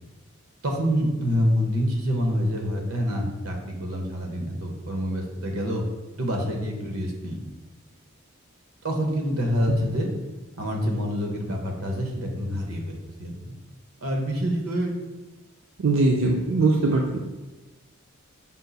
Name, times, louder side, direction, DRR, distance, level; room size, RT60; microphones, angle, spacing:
voice 1, 0.6-5.8 6.2-7.4 8.8-10.1 10.6-13.5 14.0-14.9, equal, 90° right, 2 dB, 0.9 m, -27 dB
voice 2, 15.8-17.2, right 3 dB, 65° right, 0 dB, 0.4 m, -21 dB
5.5 x 2.4 x 3.9 m, 1.2 s
head